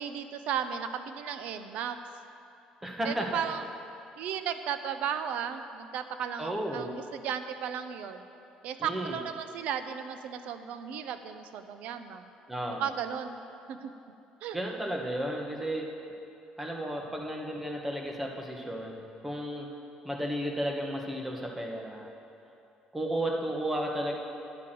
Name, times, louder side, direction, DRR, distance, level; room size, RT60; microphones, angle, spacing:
voice 1, 0.0-2.0 3.0-3.6 4.2-8.3 8.6-12.3 12.8-13.4 13.7-13.9 14.4-14.6, right 8 dB, 70° right, 9 dB, 0.7 m, -35 dB
voice 2, 2.8-3.4 6.4-6.9 8.8-9.2 12.5-12.9 14.5-15.9 16.6-19.7 20.0-22.1 22.9-24.2, right 1 dB, 10° right, 0 dB, 1.4 m, -33 dB
11.0 x 8.5 x 7.8 m, 2.9 s
cardioid pair, 150°, 2 cm